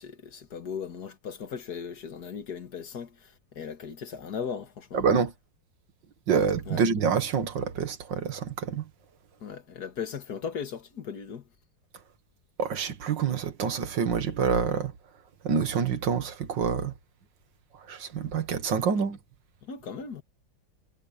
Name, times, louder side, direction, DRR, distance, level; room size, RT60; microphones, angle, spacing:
voice 1, 0.0-5.0 6.7-6.9 9.4-11.5 19.6-20.2, left 6 dB, 60° left, 2.1 m, -37 dB
voice 2, 4.9-5.3 6.3-8.8 12.6-14.9 15.4-16.9 17.9-19.2, right 6 dB, 85° right, 2.2 m, -27 dB
omnidirectional pair, 1.9 m